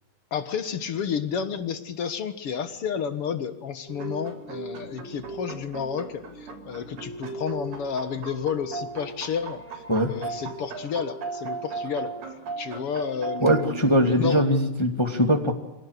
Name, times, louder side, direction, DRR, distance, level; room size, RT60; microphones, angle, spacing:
voice 1, 0.3-12.1 12.6-14.5, left 7 dB, 50° left, 11 dB, 1.9 m, -31 dB
sound 1, 3.9-13.7, right 4 dB, 75° right, 5.1 m, -37 dB
voice 2, 13.4-15.5, equal, 10° left, 4 dB, 1.7 m, -21 dB
26.0 x 17.5 x 8.2 m, 0.97 s
omnidirectional pair, 4.0 m